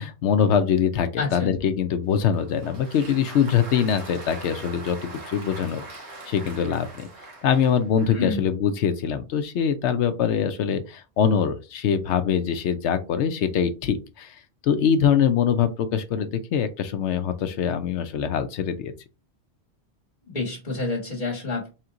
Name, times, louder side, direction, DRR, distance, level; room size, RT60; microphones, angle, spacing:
voice 1, 0.0-5.8 6.3-7.1 7.4-18.9, left 8 dB, 85° left, 9 dB, 0.9 m, -23 dB
voice 2, 1.2-1.6 8.1-8.5 20.2-21.7, left 3 dB, 35° left, -3 dB, 1.5 m, -28 dB
Applause, 2.1-8.3, right 3 dB, 75° right, 1.6 m, -42 dB
4.4 x 3.5 x 2.5 m, 0.29 s
omnidirectional pair, 1.1 m